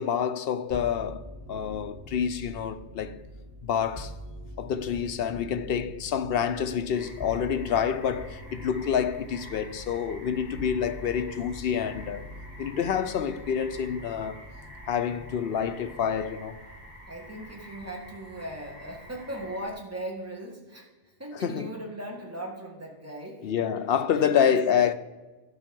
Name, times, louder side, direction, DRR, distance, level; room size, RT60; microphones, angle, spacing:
voice 1, 0.0-3.2 3.6-4.1 4.6-12.3 12.6-14.5 14.9-16.6 21.3-21.7 23.4-24.9, left 8 dB, 60° left, 0.7 m, -27 dB
sound 1, 0.7-18.1 18.5-19.2, equal, 65° right, 3.0 m, -45 dB
sound 2, 6.9-19.7, equal, 40° right, 3.5 m, -48 dB
voice 2, 17.1-20.9 21.2-23.5 24.1-24.6, right 1 dB, 15° right, 1.6 m, -38 dB
12.0 x 5.5 x 5.2 m
omnidirectional pair, 1.2 m